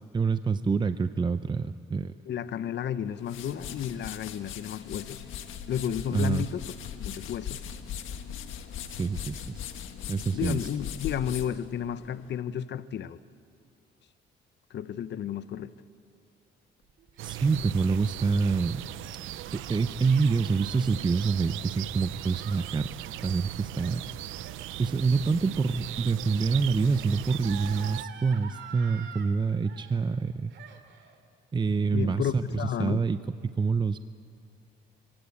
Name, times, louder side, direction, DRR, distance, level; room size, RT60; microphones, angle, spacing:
voice 1, 0.1-2.1 6.1-6.5 8.9-9.7 10.1-10.6 17.2-18.8 19.5-22.9 23.2-24.0 24.8-30.5 31.5-34.0, right 4 dB, 25° right, 11 dB, 0.6 m, -26 dB
voice 2, 2.3-5.3 5.7-6.6 7.0-7.7 10.3-13.2 14.7-15.7 31.9-33.0, left 9 dB, 65° left, 15 dB, 0.8 m, -32 dB
sound 1, 3.0-12.4, left 8 dB, 85° left, 1.5 m, -40 dB
Gasp, 16.8-29.3 29.6-30.2 30.5-31.2, right 7 dB, 70° right, 2.4 m, -49 dB
sound 2, 17.2-28.1, right 16 dB, 90° right, 0.5 m, -38 dB
27.0 x 17.0 x 8.6 m, 2.4 s
cardioid pair, 90°, 20 cm